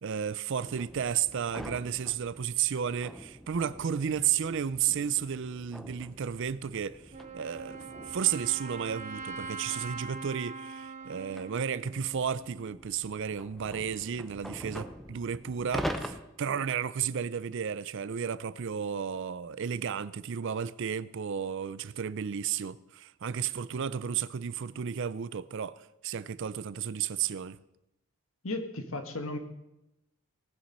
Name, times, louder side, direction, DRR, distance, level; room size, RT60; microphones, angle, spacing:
voice 1, 0.0-7.1 7.3-27.6, right 8 dB, 60° right, 0.4 m, -33 dB
sound 1, 0.6-10.3 11.0-16.2, equal, ahead, 0.7 m, -44 dB
Wind instrument woodwind instrument, 7.1-12.8, right 4 dB, 35° right, 0.8 m, -42 dB
voice 2, 28.4-29.4, left 2 dB, 70° left, 1.4 m, -35 dB
18.5 x 7.2 x 5.4 m
head